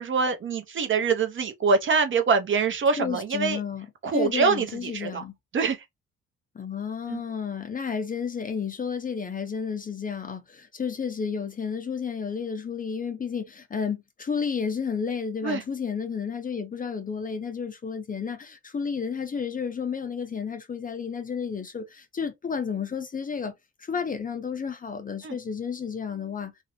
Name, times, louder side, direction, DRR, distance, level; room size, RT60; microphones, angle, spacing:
voice 1, 0.0-3.6 4.0-5.2 5.5-5.8 7.1-7.2 15.4-15.6 25.2-25.4, right 5 dB, 40° right, 0.6 m, -24 dB
voice 2, 2.9-3.9 4.1-5.4 6.5-23.5 23.8-26.5, left 6 dB, 30° left, 0.5 m, -31 dB
2.5 x 2.1 x 2.9 m
cardioid pair, 90°, 30 cm